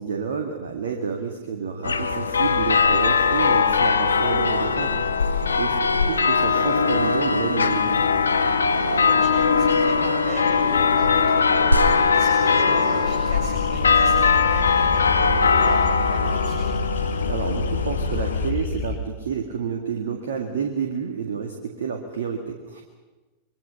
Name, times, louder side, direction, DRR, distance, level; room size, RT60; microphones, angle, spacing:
voice 1, 0.0-8.1 17.2-22.8, right 6 dB, 60° right, 4 dB, 2.0 m, -29 dB
sound 1, 1.8-18.5, left 5 dB, 75° left, 1.2 m, -20 dB
voice 2, 8.7-16.8, right 3 dB, 35° right, -2 dB, 7.0 m, -37 dB
sound 2, 11.7-21.7, right 1 dB, 85° right, 1.7 m, -33 dB
sound 3, 13.5-19.0, left 4 dB, 50° left, 3.4 m, -28 dB
27.0 x 22.5 x 5.7 m, 1.2 s
figure-of-eight pair, 90°, 0 cm